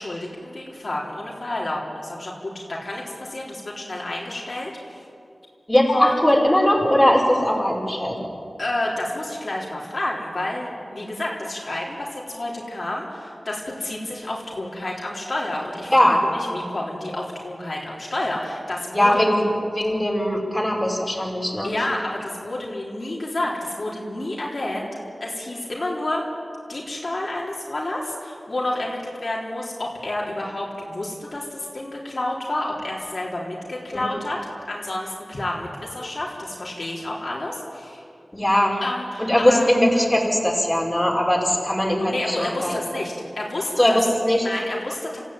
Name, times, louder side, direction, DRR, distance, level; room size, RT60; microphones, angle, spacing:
voice 1, 0.0-5.0 5.9-6.2 8.6-19.2 19.9-20.0 21.2-21.3 21.6-24.9 25.2-26.2 26.7-34.4 34.7-38.0 38.8-39.7 42.1-44.0 44.4-45.2, left 1 dB, 55° left, -4 dB, 3.9 m, -29 dB
voice 2, 5.7-8.2 15.9-16.2 18.9-19.4 19.7-21.7 33.9-34.1 38.3-38.8 39.2-42.8 43.8-44.5, left 1 dB, 15° left, -2 dB, 5.5 m, -20 dB
27.5 x 15.5 x 9.0 m, 2.5 s
wide cardioid pair, 60°, 0 cm